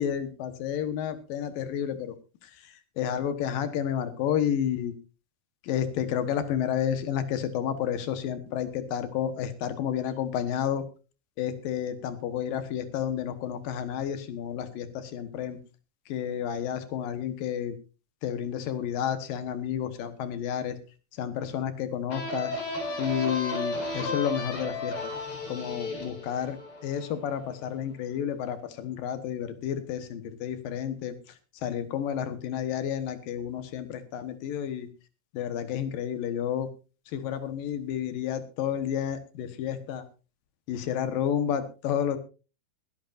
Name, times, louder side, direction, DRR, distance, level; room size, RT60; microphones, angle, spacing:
voice 1, 0.0-2.1 2.4-4.9 5.6-10.8 11.4-15.6 16.1-17.8 18.2-20.8 21.1-22.6 23.0-25.1 25.5-31.3 31.6-34.9 35.3-36.7 37.1-40.0 40.7-42.2, left 9 dB, 65° left, 11 dB, 2.3 m, -31 dB
sound 1, 22.1-27.5, left 2 dB, 30° left, 4.7 m, -34 dB
22.0 x 11.5 x 2.6 m, 0.33 s
omnidirectional pair, 5.5 m